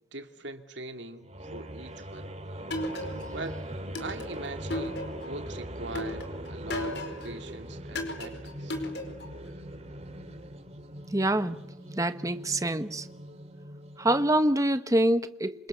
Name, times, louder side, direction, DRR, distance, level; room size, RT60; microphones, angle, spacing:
voice 1, 0.1-2.3 3.3-3.6 4.0-8.7, right 2 dB, 60° right, 2.5 m, -41 dB
sound 1, 1.2-14.5, right 1 dB, 30° right, 2.4 m, -41 dB
sound 2, 2.7-3.5 4.0-5.4 6.0-7.4 8.0-9.4, left 1 dB, 55° left, 4.9 m, -35 dB
voice 2, 11.1-11.6 11.9-13.1 14.0-15.7, right 1 dB, 15° right, 1.1 m, -25 dB
28.0 x 26.0 x 6.9 m
head